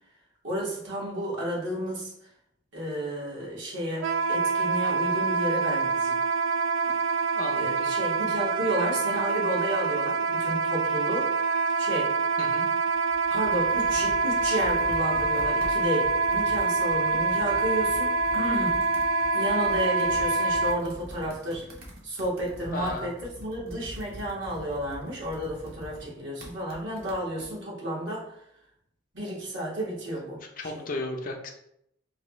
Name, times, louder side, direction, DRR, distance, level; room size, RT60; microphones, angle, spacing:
voice 1, 0.4-2.1 2.7-6.2 6.9-7.0 7.5-11.3 11.8-12.1 13.3-18.8 19.3-21.7 22.0-23.1 23.4-28.3 29.1-30.9, equal, 70° right, -5 dB, 1.5 m, -32 dB
Wind instrument woodwind instrument, 4.0-20.8, right 4 dB, 85° right, 0.3 m, -26 dB
voice 2, 7.4-7.9 12.4-12.7 22.7-23.1 30.6-31.5, left 2 dB, 45° left, 2 dB, 0.5 m, -34 dB
Computer keyboard, 12.9-27.5, equal, 55° right, 0.9 m, -44 dB
4.5 x 2.3 x 3.0 m, 0.75 s
head